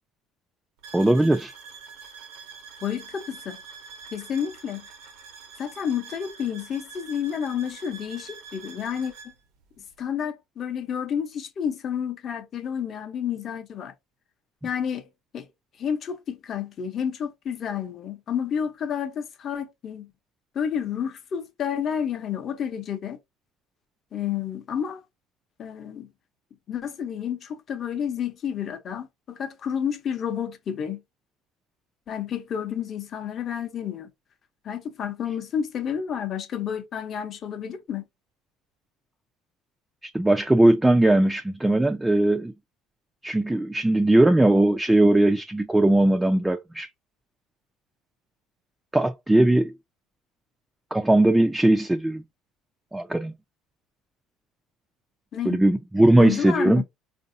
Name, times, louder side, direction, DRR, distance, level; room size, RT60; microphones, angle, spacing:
sound 1, 0.8-9.3, right 5 dB, 70° right, 0.9 m, -45 dB
voice 1, 0.9-1.5 40.1-42.5 43.2-46.9 48.9-49.7 50.9-52.2 52.9-53.3 55.5-56.8, right 1 dB, 10° right, 0.4 m, -19 dB
voice 2, 2.8-3.6 4.1-4.9 5.6-9.1 10.0-13.9 14.6-15.1 15.3-15.5 15.8-20.1 20.5-23.2 24.1-25.0 25.6-26.1 26.7-31.0 32.1-34.1 34.6-38.0 55.3-55.6 56.2-56.8, left 8 dB, 40° left, 0.8 m, -30 dB
4.6 x 2.7 x 2.6 m
cardioid pair, 115°, 0 cm